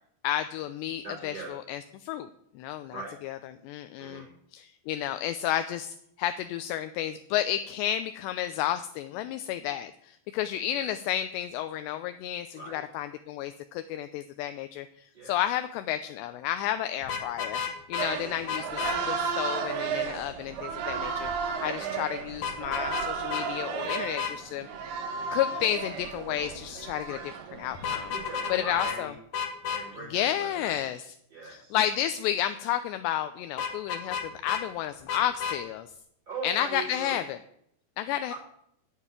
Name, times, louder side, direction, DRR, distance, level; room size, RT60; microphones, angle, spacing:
voice 1, 0.2-2.3 2.6-2.9 3.2-3.4 3.6-4.2 4.5-17.6 17.9-21.3 21.6-24.7 25.3-27.2 27.6-28.1 28.5-29.1 30.1-31.0 31.5-35.9 36.4-37.4 38.0-38.3, left 11 dB, 80° left, 10 dB, 2.6 m, -31 dB
voice 2, 1.0-1.6 2.9-3.2 4.0-4.3 4.9-5.0 10.7-10.9 12.5-12.8 15.1-15.4 17.9-18.1 21.8-22.0 27.1-27.3 28.1-29.2 29.7-30.7 31.3-31.7 36.3-37.2 38.3-38.4, right 3 dB, 20° right, -6 dB, 5.6 m, -40 dB
Vehicle horn car horn honking, 17.0-18.1 18.5-19.0 22.4-23.0 23.3-23.4 23.9-24.3 27.7-28.5 28.8-29.0 29.3-29.8 33.6-34.6 35.1-35.6, left 7 dB, 60° left, 1.9 m, -31 dB
sound 1, 18.0-28.8, right 5 dB, 65° right, 3.1 m, -34 dB
11.5 x 9.2 x 9.6 m, 0.72 s
omnidirectional pair, 5.5 m